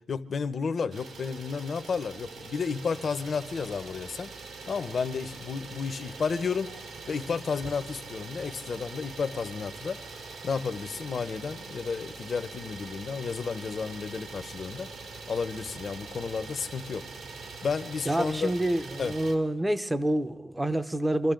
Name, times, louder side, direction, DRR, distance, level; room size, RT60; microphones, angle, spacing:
voice 1, 0.1-4.3 4.7-6.7 7.1-10.0 10.4-17.1 17.6-18.5 19.0-19.1, left 5 dB, 45° left, 0.9 m, -32 dB
Idling, 0.9-19.4, right 4 dB, 65° right, 2.7 m, -43 dB
voice 2, 18.1-21.3, right 1 dB, 10° right, 0.8 m, -27 dB
26.0 x 13.5 x 3.9 m
cardioid pair, 90°, 0 cm